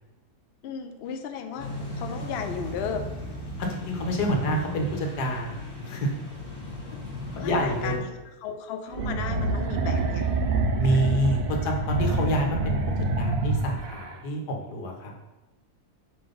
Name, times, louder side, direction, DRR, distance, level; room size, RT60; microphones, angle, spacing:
voice 1, 0.6-3.1 7.4-8.2 8.4-10.3, left 6 dB, 70° left, 6 dB, 0.6 m, -34 dB
sound 1, 1.6-8.0, left 1 dB, 35° left, 1.4 m, -36 dB
voice 2, 3.7-5.6 5.9-6.1 7.3-8.0 10.8-15.2, right 1 dB, 90° left, 1 dB, 1.5 m, -27 dB
sound 2, 8.9-14.2, right 2 dB, 70° right, 0.5 m, -26 dB
5.2 x 3.9 x 5.1 m, 1.0 s
omnidirectional pair, 1.7 m